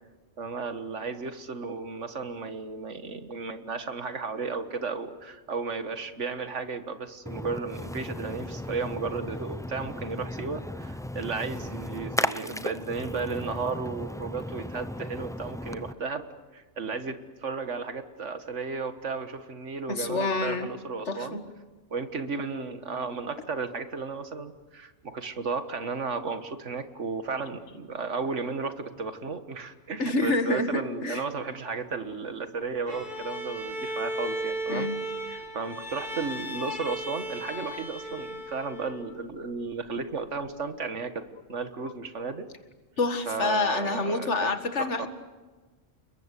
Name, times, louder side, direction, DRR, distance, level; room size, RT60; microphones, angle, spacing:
voice 1, 0.4-16.2 16.5-21.4 21.9-34.9 35.3-42.5 43.3-44.5 44.8-45.1, right 4 dB, 85° right, 9 dB, 1.9 m, -34 dB
Splash splatter, 7.3-15.9, left 1 dB, 5° left, 0.5 m, -35 dB
voice 2, 19.9-20.7 21.1-21.4 30.0-31.2 34.7-34.9 41.8-41.9 43.0-45.1, left 3 dB, 75° left, 8 dB, 2.2 m, -27 dB
Bowed string instrument, 32.9-39.2, right 1 dB, 45° right, 4.0 m, -35 dB
29.5 x 22.0 x 8.4 m, 1.3 s
omnidirectional pair, 1.2 m